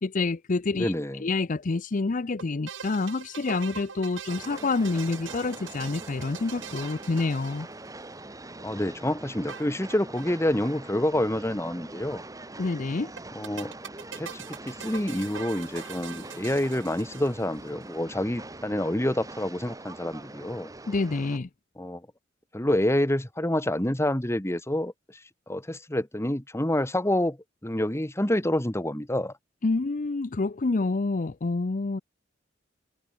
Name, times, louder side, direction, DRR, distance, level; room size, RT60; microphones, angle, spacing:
voice 1, 0.0-7.7 12.6-13.1 20.9-21.5 29.6-32.0, left 3 dB, 45° left, 0.6 m, -28 dB
voice 2, 0.7-1.2 8.6-12.2 13.4-13.7 14.2-20.7 21.8-22.1 22.5-25.2 25.5-27.4 27.6-29.3, left 1 dB, 15° left, 1.8 m, -28 dB
sound 1, 2.4-8.2 9.5-10.3 10.6-10.7 10.9-11.0 13.2-17.7, right 7 dB, 85° right, 1.3 m, -42 dB
Train, 4.3-21.4, right 2 dB, 20° right, 1.8 m, -43 dB
head